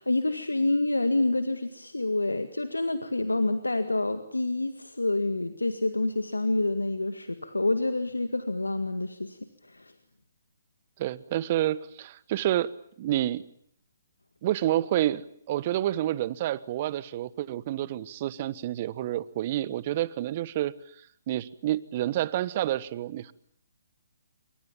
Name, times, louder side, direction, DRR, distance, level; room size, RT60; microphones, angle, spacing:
voice 1, 0.0-9.9, left 2 dB, 85° left, 9 dB, 1.8 m, -28 dB
voice 2, 11.0-12.7 13.0-13.4 14.4-15.2 15.5-23.3, right 13 dB, 40° right, 18 dB, 1.2 m, -29 dB
28.0 x 24.5 x 7.2 m, 0.66 s
figure-of-eight pair, 135°, 0 cm